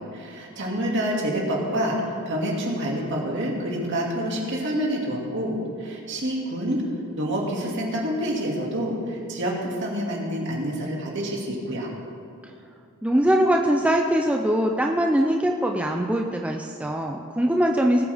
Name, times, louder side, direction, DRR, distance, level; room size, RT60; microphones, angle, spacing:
voice 1, 0.1-6.9 7.1-11.9, equal, 55° right, -2 dB, 2.3 m, -27 dB
voice 2, 13.0-18.0, right 1 dB, 5° right, 1 dB, 0.5 m, -22 dB
19.5 x 8.4 x 3.5 m, 2.5 s
head